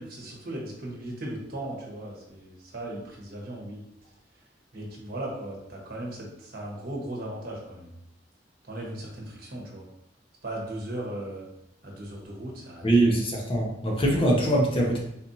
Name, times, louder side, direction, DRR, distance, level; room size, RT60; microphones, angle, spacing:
voice 1, 0.0-4.5 4.7-8.0 8.6-9.9 10.4-11.5 11.8-13.3, right 1 dB, 55° right, -2 dB, 1.0 m, -37 dB
voice 2, 12.8-15.0, right 1 dB, 30° left, -1 dB, 0.7 m, -23 dB
4.2 x 2.5 x 2.7 m, 0.80 s
head